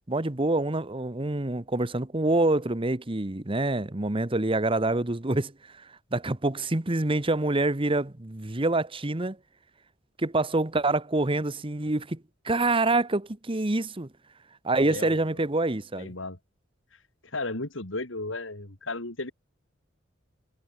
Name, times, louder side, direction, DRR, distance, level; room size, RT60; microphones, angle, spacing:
voice 1, 0.0-5.5 5.8-9.4 10.2-14.1 14.6-16.1, right 2 dB, 25° right, 1.2 m, -26 dB
voice 2, 14.8-15.2 15.9-16.4 16.9-19.3, left 2 dB, 80° left, 3.2 m, -35 dB
head